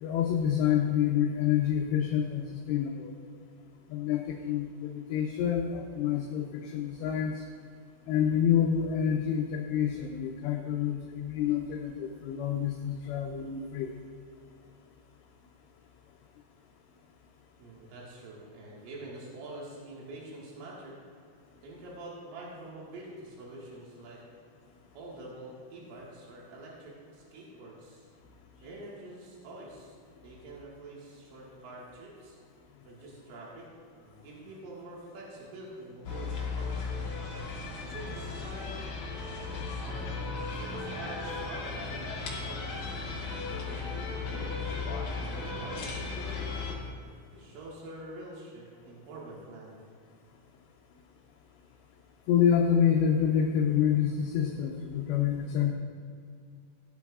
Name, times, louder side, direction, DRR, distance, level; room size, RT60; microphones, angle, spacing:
voice 1, 0.0-3.1 3.9-7.4 8.1-13.9 52.3-55.7, left 8 dB, 80° left, 2 dB, 2.5 m, -27 dB
voice 2, 17.6-21.0 21.6-24.2 25.0-28.1 28.6-29.9 30.2-32.4 32.8-33.7 34.0-37.2 37.9-38.8 39.8-40.1 40.5-43.2 43.7-45.0 45.6-46.6 47.3-49.8, right 2 dB, 90° right, -5 dB, 4.3 m, -46 dB
sound 1, 36.0-46.7, left 4 dB, 60° left, 2.0 m, -36 dB
16.5 x 10.5 x 2.4 m, 2.3 s
omnidirectional pair, 5.6 m